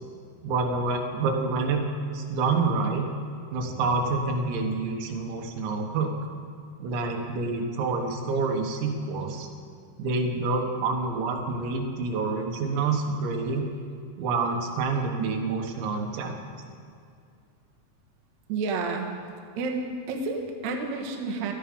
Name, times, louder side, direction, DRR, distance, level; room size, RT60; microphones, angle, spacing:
voice 1, 0.4-1.8 2.1-3.1 3.5-6.1 6.8-9.5 10.0-13.7 14.2-16.4, right 3 dB, 80° right, 2 dB, 3.7 m, -27 dB
voice 2, 18.5-19.1 19.6-21.5, right 3 dB, 65° right, 2 dB, 1.9 m, -30 dB
18.0 x 13.0 x 5.3 m, 2.4 s
omnidirectional pair, 5.3 m